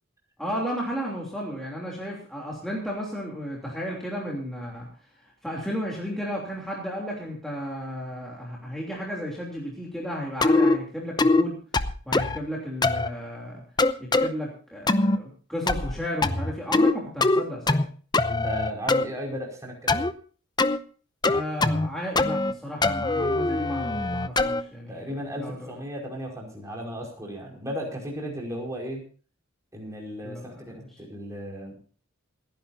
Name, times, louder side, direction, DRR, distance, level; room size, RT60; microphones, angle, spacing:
voice 1, 0.4-4.9 5.2-11.6 12.1-13.6 14.0-17.8 21.3-25.7 30.2-30.9, equal, ahead, -4 dB, 3.1 m, -34 dB
sound 1, 10.4-10.8 11.2-11.4 11.7-12.4 12.8-13.1 13.8-14.3 14.9-15.2 15.7-16.9 17.2-17.9 18.1-19.0 19.9-20.1 20.6-20.8 21.2-21.9 22.2-22.5 22.8-24.6, left 2 dB, 20° left, 0.7 m, -22 dB
voice 2, 18.3-20.0 24.9-29.0 29.7-31.8, equal, 15° right, -1 dB, 5.2 m, -35 dB
28.5 x 10.5 x 2.7 m, 0.40 s
head